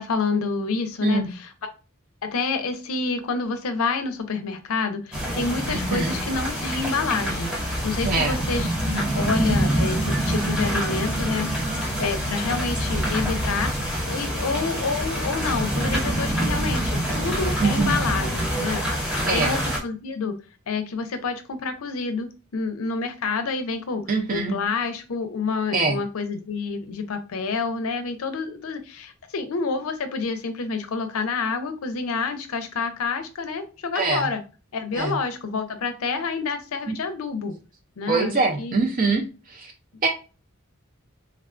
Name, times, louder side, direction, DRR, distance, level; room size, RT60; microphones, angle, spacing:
voice 1, 0.0-1.5 2.2-20.4 20.7-24.0 24.3-34.4 34.7-37.5 38.0-38.8, left 4 dB, 80° left, 8 dB, 0.5 m, -28 dB
sound 1, 5.1-19.8, right 1 dB, 5° right, 0.7 m, -26 dB
voice 2, 5.7-6.1 8.0-8.4 17.6-17.9 19.2-19.6 24.1-24.5 25.7-26.0 33.9-34.3 34.9-35.1 38.1-39.7 40.0-40.1, right 3 dB, 40° right, 3 dB, 0.5 m, -23 dB
Wind instrument woodwind instrument, 9.0-14.5, equal, 60° right, 1.2 m, -45 dB
3.4 x 2.2 x 2.4 m, 0.33 s
head